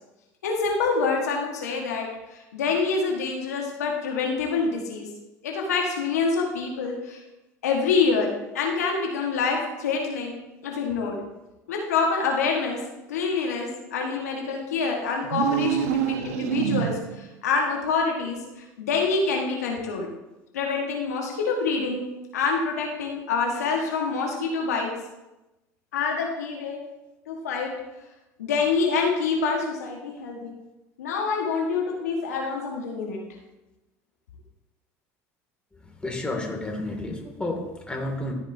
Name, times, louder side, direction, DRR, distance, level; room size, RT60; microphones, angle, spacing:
voice 1, 0.4-5.1 5.4-7.2 7.6-8.3 8.5-10.4 10.6-11.2 11.7-12.8 13.1-20.1 20.5-22.0 22.3-24.9 25.9-26.8 27.3-27.7 28.4-30.6 31.0-33.2, left 4 dB, 85° left, 0 dB, 1.3 m, -26 dB
sound 1, 15.2-17.3, right 11 dB, 75° right, 0.5 m, -26 dB
voice 2, 36.0-38.3, left 2 dB, 10° left, 0 dB, 2.2 m, -31 dB
13.5 x 5.2 x 2.7 m, 1.0 s
hypercardioid pair, 75°, 8 cm